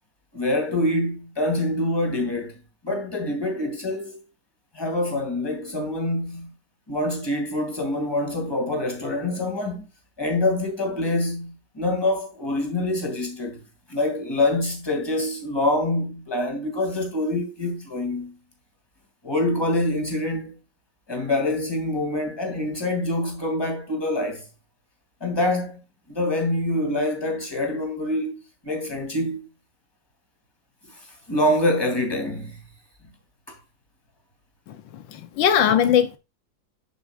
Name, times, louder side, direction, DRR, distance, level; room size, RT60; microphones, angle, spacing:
voice 1, 0.3-2.5 2.8-4.2 4.7-6.5 6.9-9.9 10.2-13.6 13.9-18.3 19.2-20.5 21.1-24.4 25.2-25.8 26.1-29.5 31.3-32.6 33.5-33.6, left 1 dB, 15° left, 2.7 m, -25 dB
voice 2, 34.7-36.2, left 9 dB, 80° left, 1.5 m, -21 dB
11.5 x 6.1 x 2.4 m
omnidirectional pair, 2.0 m